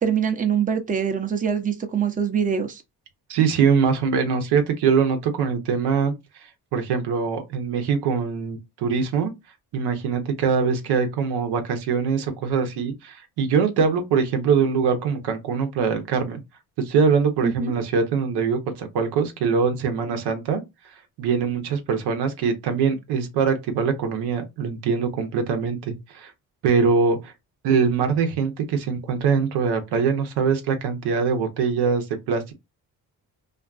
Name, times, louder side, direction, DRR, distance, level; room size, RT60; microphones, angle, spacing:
voice 1, 0.0-2.8 17.4-17.7, right 7 dB, 20° right, 0.6 m, -24 dB
voice 2, 3.3-6.1 6.7-9.3 9.7-16.4 16.8-20.6 21.2-26.3 26.6-27.3 27.6-32.5, right 6 dB, 75° right, 0.8 m, -23 dB
2.5 x 2.3 x 2.4 m
supercardioid pair, 65°, 40 cm